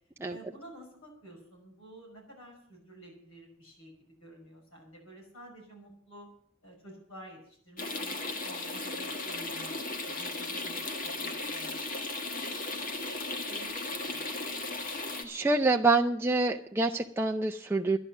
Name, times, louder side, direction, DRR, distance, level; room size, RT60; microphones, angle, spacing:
voice 1, 0.3-6.3 6.6-9.8 10.0-11.8 12.1-14.3, right 1 dB, 80° left, 1 dB, 5.6 m, -51 dB
sound 1, 7.8-15.2, left 2 dB, 40° left, 1.8 m, -36 dB
voice 2, 15.2-18.0, right 3 dB, 10° right, 2 dB, 0.5 m, -26 dB
12.5 x 11.0 x 7.2 m, 0.62 s
head